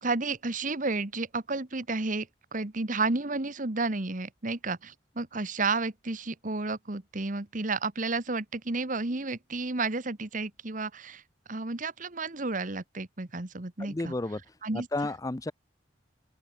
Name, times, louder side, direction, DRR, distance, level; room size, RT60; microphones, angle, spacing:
voice 1, 0.0-11.2 11.5-14.1 14.6-14.9, right 3 dB, 45° right, 1.4 m, -32 dB
voice 2, 13.8-14.4 14.7-15.5, left 2 dB, 20° left, 0.5 m, -32 dB
open air
head